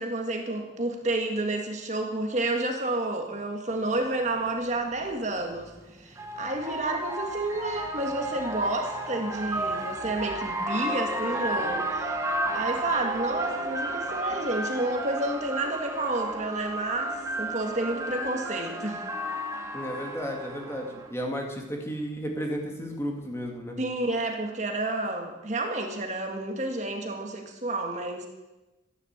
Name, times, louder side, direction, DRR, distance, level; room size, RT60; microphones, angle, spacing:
voice 1, 0.0-5.7 6.0-12.2 12.5-19.1 20.9-21.0 23.8-28.3, right 2 dB, 35° right, 3 dB, 1.8 m, -30 dB
sound 1, 4.0-4.1 5.5-21.1, right 1 dB, 15° right, 1.4 m, -32 dB
voice 2, 19.7-23.8, equal, 15° left, 1 dB, 2.2 m, -33 dB
13.5 x 11.0 x 8.2 m, 1.1 s
head